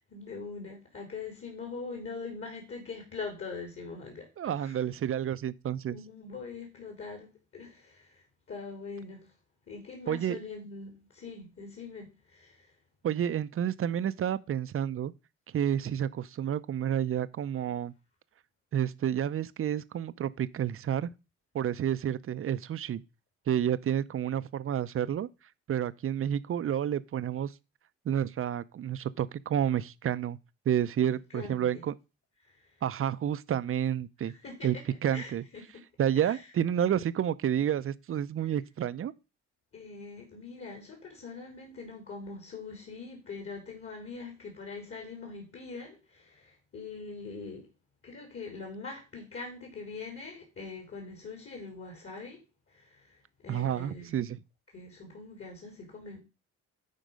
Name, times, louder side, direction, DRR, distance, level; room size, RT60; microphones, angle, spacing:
voice 1, 0.0-4.8 5.9-9.3 9.7-12.7 31.0-31.8 32.4-32.8 34.2-34.8 35.1-35.7 36.2-36.4 38.4-38.5 39.7-47.7 48.0-52.4 52.7-54.1 54.7-56.2, left 4 dB, 45° left, 3.6 m, -43 dB
voice 2, 4.4-6.0 10.1-10.4 13.0-15.1 15.5-17.9 18.7-21.1 21.5-23.0 23.5-25.3 25.7-27.5 28.1-30.4 30.7-31.9 32.8-34.3 34.6-34.8 35.0-35.4 36.0-39.1 53.5-54.4, right 10 dB, 45° right, 0.6 m, -30 dB
10.5 x 4.6 x 5.2 m
cardioid pair, 90°, 30 cm